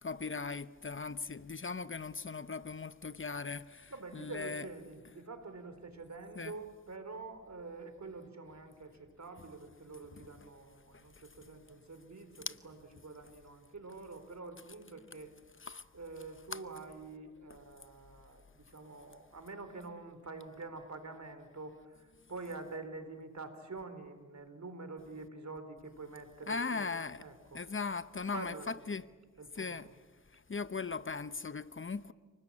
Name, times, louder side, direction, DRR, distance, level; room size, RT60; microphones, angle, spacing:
voice 1, 0.0-4.6 6.4-6.5 10.9-11.2 12.5-12.6 15.6-15.8 16.5-16.6 26.5-27.2 27.5-29.1 29.5-29.9 30.3-32.1, left 4 dB, 40° left, 0.9 m, -39 dB
voice 2, 3.9-15.3 15.9-27.6 28.3-28.8 29.4-29.9, right 3 dB, 60° right, 4.0 m, -47 dB
29.5 x 20.0 x 8.7 m
cardioid pair, 50°, 31 cm